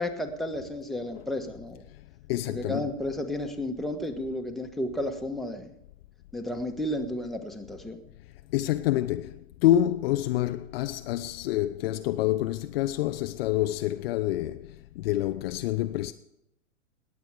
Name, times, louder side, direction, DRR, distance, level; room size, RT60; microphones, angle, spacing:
voice 1, 0.0-1.8 2.5-5.7 6.3-8.0, left 1 dB, ahead, 1.5 m, -32 dB
voice 2, 2.3-2.9 8.5-16.1, left 13 dB, 45° left, 0.7 m, -27 dB
19.0 x 8.3 x 4.9 m
figure-of-eight pair, 100°, 40 cm